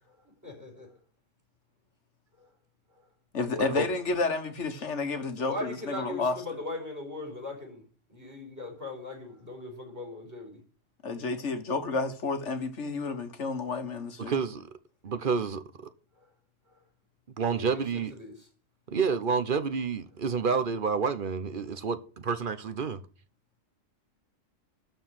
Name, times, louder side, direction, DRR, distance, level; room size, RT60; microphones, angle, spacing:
voice 1, 3.3-6.4 11.0-14.3, left 3 dB, 65° left, 1.6 m, -30 dB
voice 2, 5.4-7.8 8.1-10.6 16.1-16.3 16.7-16.8 17.5-18.3, left 2 dB, 15° right, 4.9 m, -39 dB
voice 3, 14.2-14.7 15.0-15.9 17.4-18.1 18.9-23.0, right 5 dB, 45° right, 1.0 m, -29 dB
12.5 x 4.6 x 7.5 m
omnidirectional pair, 1.3 m